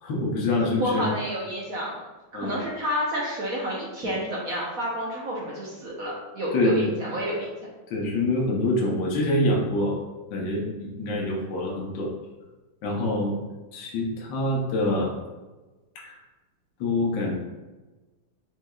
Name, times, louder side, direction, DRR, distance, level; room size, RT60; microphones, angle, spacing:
voice 1, 0.0-1.0 2.3-2.6 4.0-4.1 6.5-6.9 7.9-10.0 10.3-12.1 12.8-13.3 13.7-15.1 15.9-16.2 16.8-17.3, left 1 dB, 65° left, -3 dB, 1.5 m, -25 dB
voice 2, 0.8-2.0 2.4-7.5, equal, 60° right, -5 dB, 0.9 m, -29 dB
6.5 x 3.5 x 2.3 m, 1.2 s
omnidirectional pair, 2.4 m